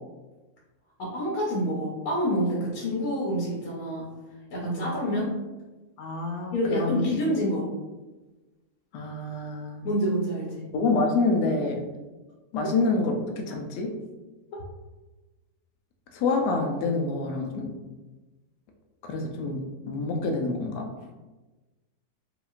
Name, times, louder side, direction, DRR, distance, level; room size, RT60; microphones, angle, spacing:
voice 1, 1.0-4.0 4.5-5.3 6.5-7.7 9.8-10.6, equal, 65° left, -5 dB, 1.3 m, -27 dB
voice 2, 6.0-7.0 8.9-9.9 10.7-11.8 12.5-13.9 16.1-17.7 19.0-20.9, left 3 dB, 90° left, 2 dB, 1.2 m, -27 dB
4.8 x 2.9 x 2.4 m, 1.2 s
omnidirectional pair, 1.7 m